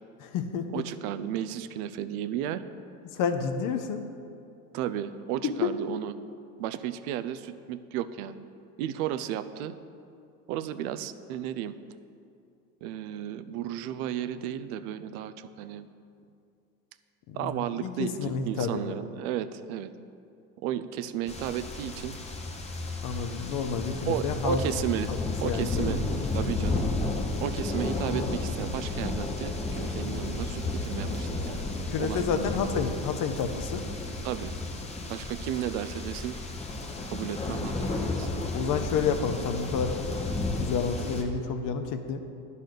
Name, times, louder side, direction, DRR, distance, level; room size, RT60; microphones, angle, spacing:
voice 1, 0.2-0.8 3.1-4.0 5.6-5.7 17.3-17.5 17.8-19.0 23.0-24.6 25.1-25.2 25.4-26.0 31.9-33.8 38.5-40.0 40.5-42.2, left 6 dB, 45° left, 7 dB, 0.8 m, -29 dB
voice 2, 0.7-2.6 4.7-6.1 6.6-8.5 8.8-9.7 10.5-11.7 12.8-15.9 17.3-19.9 20.6-22.2 24.0-25.1 25.4-26.1 26.3-26.9 27.4-31.6 32.0-32.6 34.2-34.5 35.1-36.4 37.0-38.3, right 11 dB, 70° right, 13 dB, 0.6 m, -33 dB
sound 1, 21.3-41.2, left 2 dB, 15° left, 0.8 m, -32 dB
10.5 x 4.1 x 6.6 m, 2.5 s
supercardioid pair, 110°, 44 cm